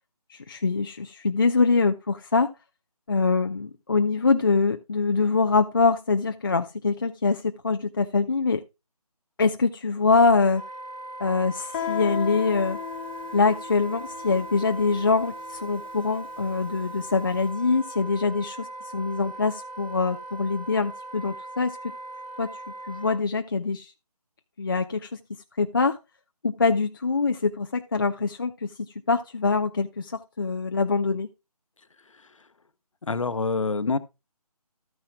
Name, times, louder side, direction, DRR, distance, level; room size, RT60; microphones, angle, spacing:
voice 1, 0.3-2.5 3.1-8.6 9.4-10.6 11.2-12.8 13.3-18.7 18.9-21.9 22.4-22.5 22.9-23.9 24.6-25.2 25.6-26.0 26.4-28.7 29.1-31.3, left 4 dB, 35° left, 0.5 m, -24 dB
Wind instrument woodwind instrument, 10.5-23.2, right 2 dB, 85° right, 3.0 m, -39 dB
Guitar, 11.7-17.2, left 9 dB, 20° left, 1.4 m, -36 dB
voice 2, 33.0-34.0, left 4 dB, 55° left, 1.0 m, -26 dB
13.0 x 9.5 x 2.3 m
figure-of-eight pair, 160°, 20 cm